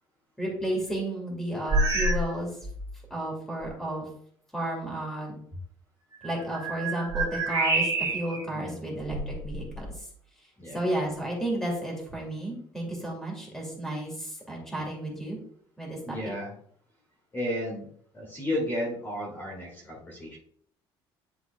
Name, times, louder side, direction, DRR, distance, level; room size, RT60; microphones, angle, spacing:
voice 1, 0.4-2.5 3.1-4.1 4.5-5.4 6.2-9.9 10.7-15.4 15.8-16.0, right 1 dB, ahead, -2 dB, 2.3 m, -32 dB
sound 1, 1.7-2.3 2.6-3.0 3.6-3.7 6.1-8.4 9.0-10.0, right 2 dB, 25° right, 2.5 m, -28 dB
voice 2, 8.5-9.0 10.6-10.9 16.0-16.5 17.3-17.9 18.1-20.4, left 1 dB, 20° left, -3 dB, 2.1 m, -33 dB
10.5 x 3.8 x 3.4 m, 0.62 s
cardioid pair, 165°, 10 cm